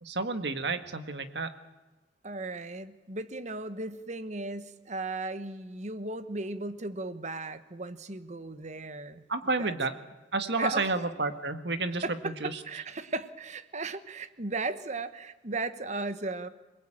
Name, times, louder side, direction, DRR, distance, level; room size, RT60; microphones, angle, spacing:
voice 1, 0.0-1.5 9.3-9.9 10.3-12.6, right 3 dB, 70° right, 9 dB, 1.8 m, -31 dB
voice 2, 2.2-9.2 9.6-9.7 10.6-10.9 12.0-16.5, right 3 dB, 40° right, 12 dB, 1.3 m, -36 dB
27.0 x 19.0 x 9.0 m, 1.2 s
head